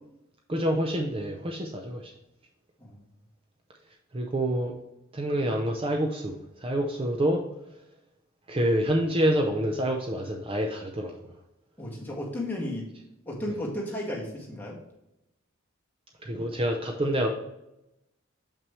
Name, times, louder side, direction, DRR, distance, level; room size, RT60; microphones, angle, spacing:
voice 1, 0.5-2.1 4.1-4.7 5.1-7.4 8.5-11.2 16.2-17.3, right 1 dB, 25° right, 2 dB, 0.5 m, -27 dB
voice 2, 11.8-12.9 13.2-14.8, left 1 dB, 10° left, -4 dB, 1.7 m, -34 dB
6.9 x 5.9 x 3.1 m, 0.90 s
head